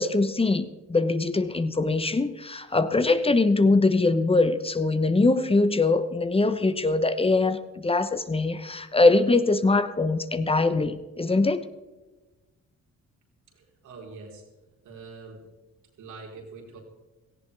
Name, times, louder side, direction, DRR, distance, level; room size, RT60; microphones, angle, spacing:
voice 1, 0.0-11.7, left 3 dB, 20° left, 11 dB, 1.0 m, -22 dB
voice 2, 13.5-14.5 14.8-15.5 16.0-16.8, right 4 dB, 80° right, -1 dB, 4.4 m, -44 dB
17.5 x 16.0 x 3.5 m, 1.2 s
cardioid pair, 90°, 30 cm